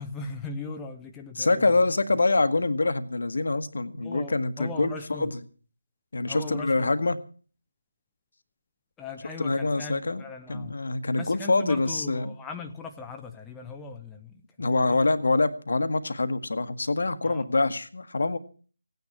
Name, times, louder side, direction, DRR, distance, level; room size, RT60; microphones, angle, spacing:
voice 1, 0.0-2.2 4.0-5.3 6.3-7.0 9.0-10.7 11.1-15.0 17.2-17.4, left 3 dB, 10° left, 2 dB, 0.7 m, -39 dB
voice 2, 1.4-4.9 5.2-5.3 6.1-7.2 9.4-10.2 10.5-12.3 14.6-18.4, left 3 dB, 55° left, 11 dB, 1.3 m, -25 dB
17.0 x 9.5 x 7.1 m, 0.42 s
figure-of-eight pair, 155°, 0 cm